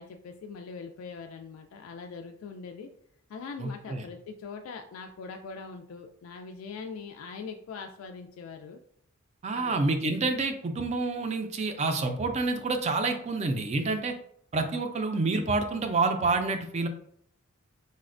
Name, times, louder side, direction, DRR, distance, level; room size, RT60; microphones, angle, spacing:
voice 1, 0.0-2.9 3.3-8.8 9.5-9.8, left 5 dB, 80° left, 6 dB, 0.3 m, -42 dB
voice 2, 3.6-4.0 9.4-14.1 14.5-16.9, right 3 dB, 35° right, 6 dB, 0.3 m, -28 dB
4.0 x 2.1 x 2.4 m, 0.64 s
head